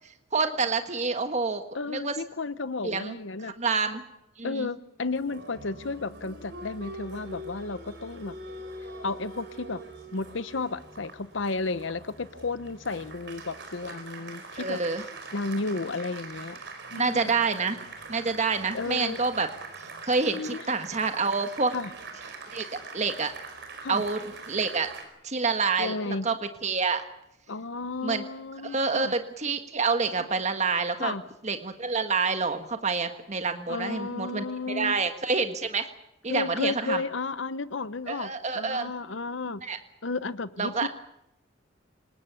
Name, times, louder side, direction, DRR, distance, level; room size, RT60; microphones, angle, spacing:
voice 1, 0.3-1.6 1.9-2.1 2.8-3.2 3.4-4.0 4.4-4.7 14.5-15.0 16.9-17.8 18.1-19.5 20.0-21.7 22.5-22.7 22.9-23.3 23.9-24.9 25.2-26.4 26.6-27.0 28.0-28.2 28.6-31.1 31.4-35.9 36.2-37.0 38.1-38.9 39.6-39.8 40.6-40.9, right 4 dB, 35° right, 7 dB, 1.5 m, -27 dB
voice 2, 1.7-3.5 4.4-8.4 9.0-9.8 10.1-14.8 15.3-16.6 16.9-17.4 18.7-19.2 20.3-20.6 21.7-21.9 23.8-24.0 25.8-26.3 27.5-29.1 30.2-30.3 31.0-31.2 33.7-35.0 36.3-39.6 40.0-40.9, left 3 dB, 70° left, 15 dB, 0.9 m, -33 dB
Applause, 5.1-25.0, right 3 dB, 60° right, 4.8 m, -43 dB
26.0 x 19.5 x 7.1 m, 0.81 s
head